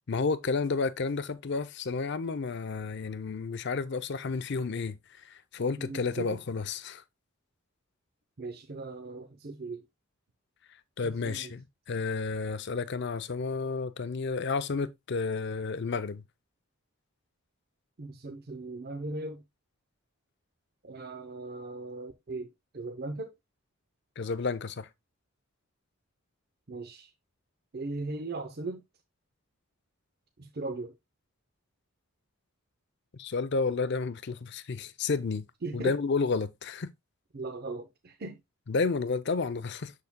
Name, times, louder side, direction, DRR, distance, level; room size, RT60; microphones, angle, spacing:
voice 1, 0.1-5.0 5.2-7.0 11.0-16.2 24.2-24.9 33.1-35.4 35.7-36.9 38.7-39.9, left 4 dB, 55° left, 0.5 m, -31 dB
voice 2, 5.8-6.4 8.4-9.8 11.0-11.5 18.0-19.4 20.8-22.5 22.7-23.3 26.7-27.1 27.7-28.8 30.4-30.9 35.6-35.9 37.3-38.4, right 3 dB, 45° right, 0.7 m, -38 dB
7.0 x 6.7 x 2.2 m
head